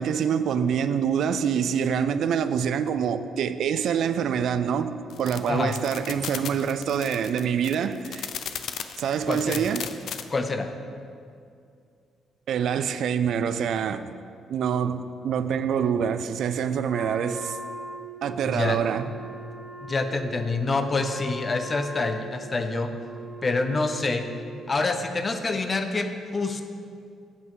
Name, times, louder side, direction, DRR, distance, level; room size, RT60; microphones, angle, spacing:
voice 1, 0.0-8.3 9.0-9.9 12.5-14.1 14.5-17.6 18.2-19.1, right 7 dB, 70° right, 0.3 m, -26 dB
sound 1, 5.1-10.2, left 8 dB, 70° left, 0.4 m, -35 dB
voice 2, 9.3-9.6 10.3-10.7 18.4-18.8 19.8-22.9 23.4-24.3 24.7-26.6, left 3 dB, 30° left, 0.6 m, -26 dB
Wind instrument woodwind instrument, 16.9-24.8, right 3 dB, ahead, 1.3 m, -41 dB
8.1 x 5.5 x 4.7 m
cardioid pair, 90°, 0 cm